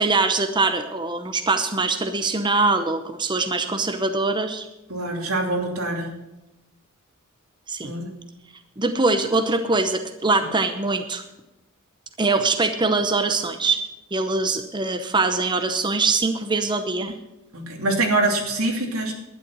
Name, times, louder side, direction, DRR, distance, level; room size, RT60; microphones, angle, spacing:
voice 1, 0.0-4.7 7.7-7.9 8.8-11.2 12.2-13.8 14.1-17.1, right 3 dB, 20° right, 7 dB, 0.8 m, -23 dB
voice 2, 4.9-6.1 7.8-8.1 17.5-19.1, right 2 dB, 90° right, 1 dB, 2.8 m, -24 dB
11.5 x 9.9 x 6.1 m, 0.96 s
head